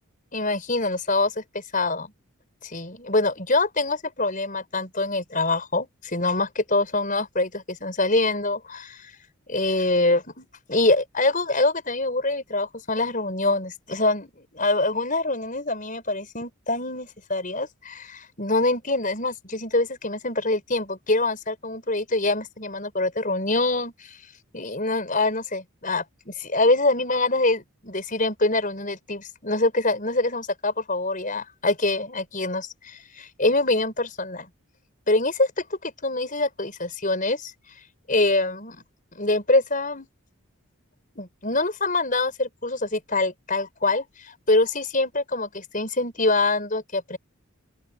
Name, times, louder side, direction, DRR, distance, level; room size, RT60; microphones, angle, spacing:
voice 1, 0.3-2.1 2.6-9.1 9.5-24.2 24.5-34.5 35.1-37.5 38.1-38.8 39.1-40.1 41.2-47.2, left 2 dB, 35° left, 6.3 m, -25 dB
open air
head